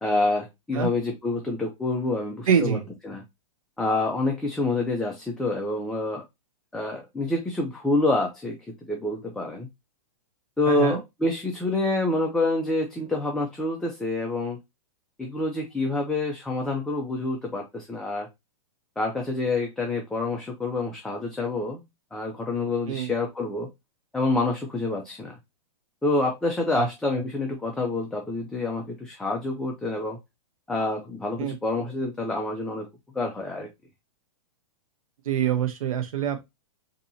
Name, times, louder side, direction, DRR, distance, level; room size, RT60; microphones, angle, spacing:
voice 1, 0.0-2.8 3.0-3.2 3.8-6.2 6.7-8.6 8.9-9.7 10.6-14.6 15.2-18.3 19.0-21.8 22.1-23.7 24.1-25.4 26.0-30.2 30.7-32.9 33.1-33.7, left 2 dB, 5° left, 0.3 m, -27 dB
voice 2, 2.5-2.8 10.7-11.0 22.9-23.1 26.7-26.9 31.4-31.6 35.3-36.4, right 8 dB, 90° right, 0.7 m, -25 dB
4.0 x 2.7 x 2.6 m
hypercardioid pair, 155°, 17 cm